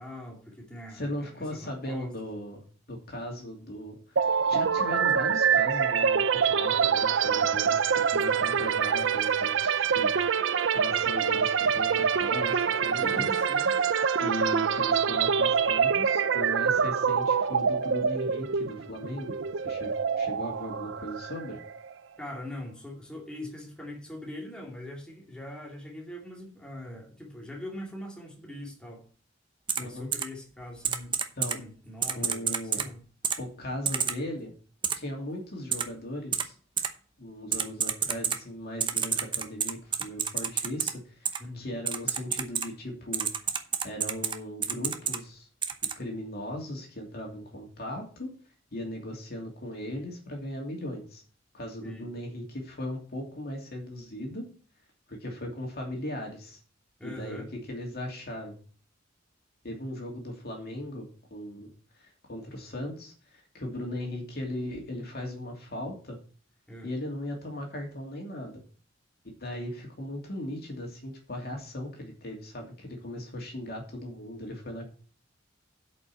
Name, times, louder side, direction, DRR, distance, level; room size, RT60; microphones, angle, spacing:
voice 1, 0.0-2.1 12.9-13.7 22.2-29.0 29.8-31.2 31.4-33.0 41.4-41.8 51.8-52.1 57.0-57.5 66.7-66.9, left 1 dB, 5° left, -2 dB, 2.5 m, -42 dB
voice 2, 0.9-2.6 2.9-4.2 4.5-10.1 10.7-13.3 14.2-19.4 19.6-21.6 29.8-30.1 31.4-31.6 32.1-32.8 33.4-34.5 35.0-36.5 37.2-43.3 43.8-45.5 46.0-48.3 48.7-51.2 51.5-54.4 55.1-56.6 57.0-58.6 59.6-61.7 62.0-66.2 66.8-68.6 69.4-74.9, left 1 dB, 55° left, 1 dB, 2.7 m, -38 dB
sound 1, 4.2-21.9, right 6 dB, 65° right, 0.5 m, -25 dB
Typing, 29.7-29.8 30.1-30.2 30.8-31.6 32.0-32.9 33.2-33.4 33.9-34.1 34.8-34.9 35.7-35.8 36.3-36.4 36.8-36.9 37.5-38.4 38.8-40.9 41.3-41.4 41.9-42.7 43.1-44.4 44.6-45.2 45.6-45.9, right 7 dB, 25° right, 0.9 m, -28 dB
8.3 x 5.4 x 7.6 m, 0.40 s
head